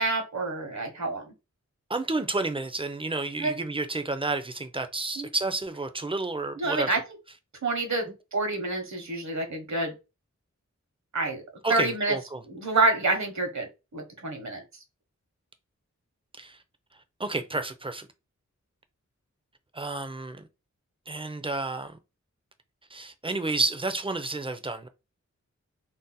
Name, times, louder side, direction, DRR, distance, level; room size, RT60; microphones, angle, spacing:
voice 1, 0.0-1.3 3.4-3.5 5.2-5.3 6.6-7.0 7.6-10.0 11.1-11.4 11.7-12.2 12.5-13.7 13.9-14.6, right 2 dB, 70° right, 0.9 m, -27 dB
voice 2, 1.9-6.9 11.6-12.4 16.4-16.6 17.2-18.1 19.7-20.5 21.1-22.0 22.9-24.9, right 2 dB, 20° right, 0.4 m, -30 dB
2.6 x 2.0 x 3.9 m
wide cardioid pair, 80°, 29 cm